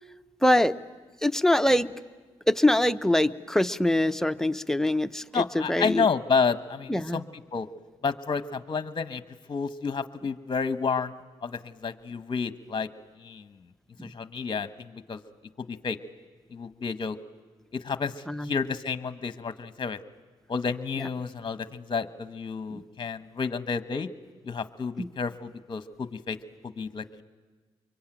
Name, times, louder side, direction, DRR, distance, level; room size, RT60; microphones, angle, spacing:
voice 1, 0.4-0.8 1.2-1.9 2.5-6.1 6.9-7.2 14.0-14.1 18.3-18.5 22.7-22.8 25.0-25.1, left 1 dB, 5° left, 9 dB, 0.9 m, -24 dB
voice 2, 5.3-7.2 7.5-7.7 8.0-9.2 9.5-11.1 11.4-12.9 13.2-13.6 14.0-15.2 15.7-16.0 16.5-17.2 17.7-20.0 20.5-24.1 24.4-26.4 26.6-27.2, left 5 dB, 45° left, 11 dB, 1.2 m, -30 dB
25.0 x 23.0 x 9.0 m, 1.3 s
cardioid pair, 60°, 12 cm